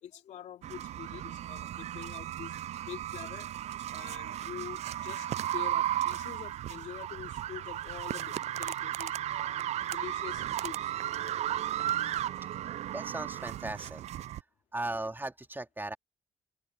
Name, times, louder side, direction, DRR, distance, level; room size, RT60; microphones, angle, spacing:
voice 1, 0.0-2.6 2.9-3.5 3.9-10.9, left 10 dB, 75° left, 2.9 m, -46 dB
sound 1, 0.6-14.4, right 12 dB, 65° right, 0.4 m, -35 dB
voice 2, 12.6-14.0 14.7-16.0, right 2 dB, 15° right, 2.6 m, -37 dB
supercardioid pair, 60°, 12 cm